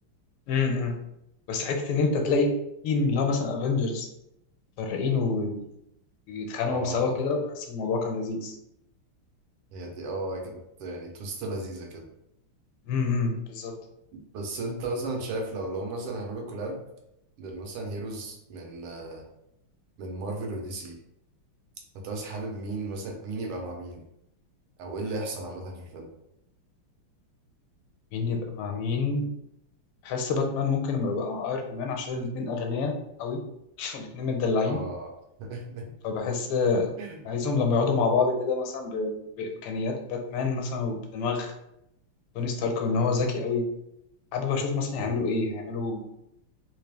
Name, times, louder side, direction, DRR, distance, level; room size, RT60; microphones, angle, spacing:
voice 1, 0.5-1.0 1.5-2.5 2.8-4.1 4.8-5.6 6.3-8.6 12.8-13.8 28.1-29.3 30.0-33.4 33.8-34.8 36.0-36.9 37.3-41.5 42.3-43.7 44.3-46.0, left 4 dB, 85° left, 4 dB, 1.5 m, -27 dB
voice 2, 6.7-7.2 9.7-12.1 14.1-16.8 17.4-19.2 20.0-21.0 21.9-24.0 24.8-26.1 34.6-35.1 35.4-35.8 37.0-37.3 44.9-45.2, right 2 dB, 80° right, 1 dB, 1.7 m, -35 dB
3.9 x 2.4 x 3.3 m, 0.82 s
omnidirectional pair, 2.4 m